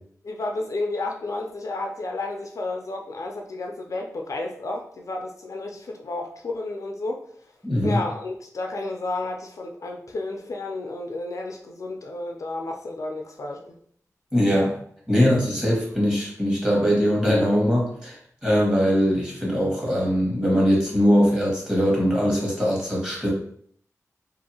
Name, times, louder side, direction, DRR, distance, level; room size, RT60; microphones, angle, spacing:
voice 1, 0.2-7.2 7.8-13.8, left 2 dB, 60° left, 2 dB, 0.4 m, -31 dB
voice 2, 7.6-8.0 14.3-14.8 15.1-23.3, equal, 10° right, -4 dB, 1.2 m, -21 dB
2.6 x 2.5 x 2.7 m, 0.62 s
wide cardioid pair, 80°, 6 cm